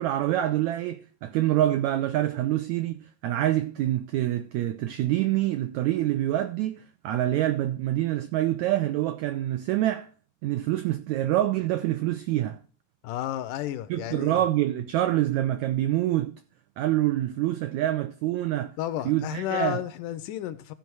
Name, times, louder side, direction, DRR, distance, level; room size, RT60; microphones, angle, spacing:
voice 1, 0.0-10.1 10.4-12.6 13.9-16.3 16.8-18.7 19.0-19.8, right 14 dB, 85° right, 1.6 m, -26 dB
voice 2, 13.0-14.4 18.8-20.7, left 12 dB, 80° left, 2.0 m, -32 dB
14.5 x 5.2 x 4.6 m
omnidirectional pair, 3.9 m